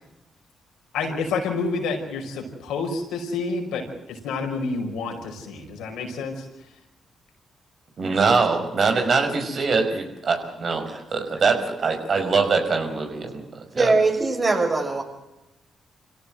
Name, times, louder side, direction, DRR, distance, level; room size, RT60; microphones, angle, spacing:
voice 1, 0.9-6.4, left 4 dB, 80° left, 3 dB, 5.4 m, -29 dB
voice 2, 8.0-13.4 13.7-13.9, right 4 dB, 55° right, 5 dB, 5.7 m, -23 dB
voice 3, 13.8-15.0, right 3 dB, 40° right, 4 dB, 6.9 m, -22 dB
26.0 x 17.0 x 8.0 m, 0.94 s
hypercardioid pair, 45°, 0 cm